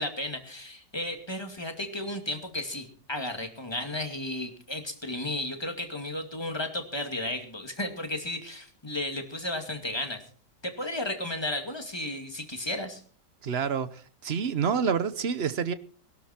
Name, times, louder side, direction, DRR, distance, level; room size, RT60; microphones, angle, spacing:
voice 1, 0.0-10.2 10.6-13.0, left 1 dB, 15° left, 2.2 m, -34 dB
voice 2, 13.4-15.7, right 6 dB, 50° right, 0.9 m, -28 dB
21.0 x 12.0 x 4.4 m
omnidirectional pair, 1.9 m